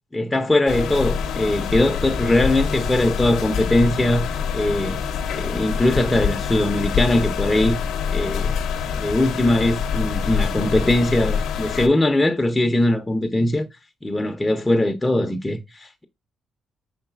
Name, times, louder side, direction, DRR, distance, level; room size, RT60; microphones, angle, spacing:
voice 1, 0.1-5.0 5.3-7.8 8.1-8.6 9.0-13.7 14.0-16.0, left 1 dB, 15° left, 0.5 m, -21 dB
sound 1, 0.7-11.9, left 7 dB, 80° left, 0.5 m, -25 dB
5.3 x 3.9 x 2.3 m
cardioid pair, 90°, 0 cm